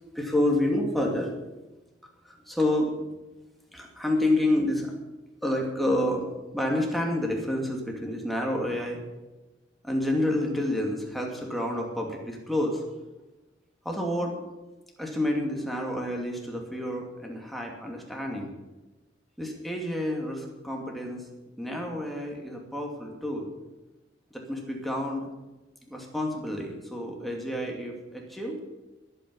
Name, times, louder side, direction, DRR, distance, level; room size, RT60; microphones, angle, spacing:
voice 1, 0.1-1.4 2.2-3.0 3.7-4.9 5.4-9.0 9.8-12.8 13.8-14.4 15.0-18.5 19.4-21.2 21.6-23.5 24.3-25.3 25.9-28.6, left 1 dB, ahead, 0 dB, 2.7 m, -29 dB
21.5 x 9.1 x 5.6 m, 1.1 s
head